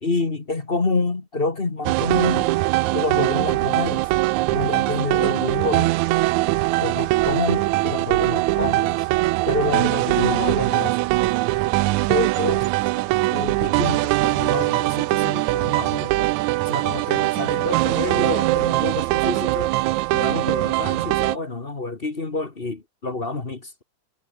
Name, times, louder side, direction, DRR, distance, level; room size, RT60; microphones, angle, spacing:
voice 1, 0.0-2.5 2.9-4.1 4.5-5.9 6.8-9.1 9.4-11.0 12.1-12.7 13.3-16.3 16.6-19.7 20.1-23.8, left 3 dB, 25° left, 1.3 m, -28 dB
sound 1, 1.9-21.4, right 19 dB, 80° right, 1.9 m, -21 dB
omnidirectional pair, 3.6 m